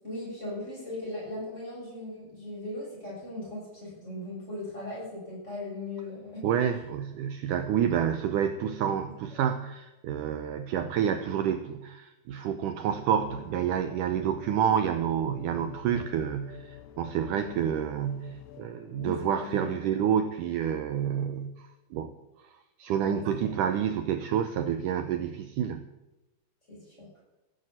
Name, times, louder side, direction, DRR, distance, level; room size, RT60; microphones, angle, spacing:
voice 1, 0.0-6.4 17.3-17.7 19.0-19.7 23.0-23.6 26.7-27.1, left 2 dB, 15° left, -5 dB, 8.1 m, -38 dB
voice 2, 6.4-22.1 22.8-25.8, right 9 dB, 85° right, 9 dB, 1.8 m, -29 dB
sound 1, 13.0-19.3, left 10 dB, 85° left, 3.0 m, -48 dB
15.5 x 9.1 x 9.0 m, 1.0 s
omnidirectional pair, 4.5 m